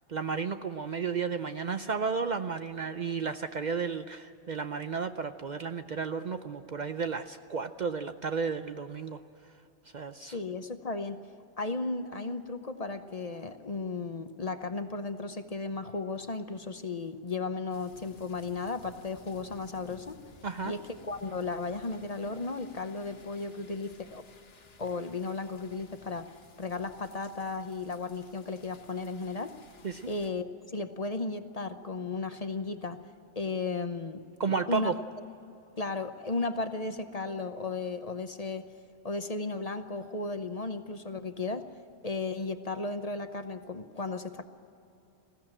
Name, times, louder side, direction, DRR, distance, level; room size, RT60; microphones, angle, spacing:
voice 1, 0.1-9.2 9.9-10.4 20.4-20.7 29.8-30.1 34.4-35.0, right 5 dB, 50° right, 9 dB, 0.7 m, -33 dB
voice 2, 10.2-11.2 11.6-20.2 20.6-20.8 21.1-24.2 24.8-29.6 30.1-30.5 30.7-33.0 33.4-34.2 34.7-34.9 35.8-38.7 39.0-41.7 42.0-44.4, left 3 dB, 40° left, 9 dB, 0.9 m, -35 dB
sound 1, 17.7-30.3, left 4 dB, 65° left, 1.5 m, -57 dB
20.5 x 16.0 x 8.9 m, 2.8 s
omnidirectional pair, 1.1 m